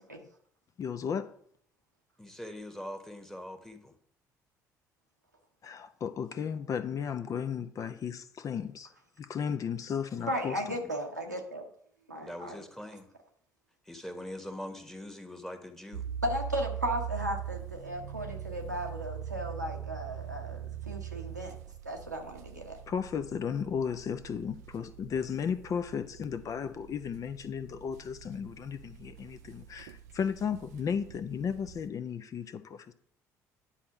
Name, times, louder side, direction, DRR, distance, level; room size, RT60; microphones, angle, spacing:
voice 1, 0.8-1.3 5.6-8.9 9.2-10.8 22.9-32.9, left 7 dB, 40° left, 0.6 m, -34 dB
voice 2, 2.2-3.9 10.2-10.5 10.8-10.9 12.2-13.1 13.9-16.0, left 1 dB, 5° left, 1.3 m, -43 dB
voice 3, 10.3-11.7 12.1-12.6 16.2-21.5 21.8-22.8, equal, 90° right, 1.0 m, -35 dB
sound 1, 15.9-31.9, right 10 dB, 70° right, 0.4 m, -42 dB
10.0 x 4.3 x 5.9 m
figure-of-eight pair, 55°, 9 cm